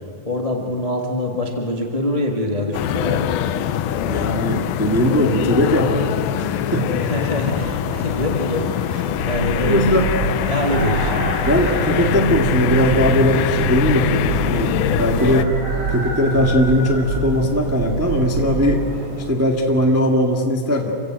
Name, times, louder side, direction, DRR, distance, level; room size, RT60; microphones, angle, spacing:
voice 1, 0.2-3.4 7.0-9.9 10.4-11.2, left 1 dB, 35° left, 1 dB, 0.6 m, -24 dB
sound 1, 2.7-15.5, left 12 dB, 85° left, 2.5 m, -23 dB
sound 2, 3.0-19.3, right 1 dB, 80° right, 8.2 m, -34 dB
voice 2, 4.0-6.1 6.3-7.0 9.6-10.0 11.5-15.5 15.9-18.9 19.3-20.9, equal, 15° right, 0 dB, 0.6 m, -19 dB
sound 3, 9.2-18.8, right 3 dB, 55° right, 2.3 m, -26 dB
28.0 x 16.5 x 7.7 m, 2.8 s
omnidirectional pair, 4.1 m